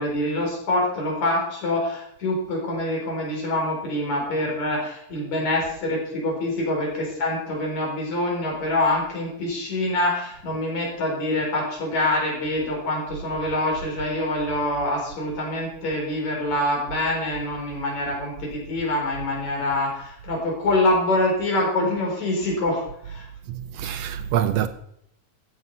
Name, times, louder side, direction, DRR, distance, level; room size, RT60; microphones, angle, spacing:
voice 1, 0.0-23.3, left 1 dB, 70° left, 5.4 m, -25 dB
voice 2, 23.5-24.7, right 10 dB, 75° right, 1.6 m, -25 dB
14.0 x 7.6 x 5.5 m
omnidirectional pair, 3.4 m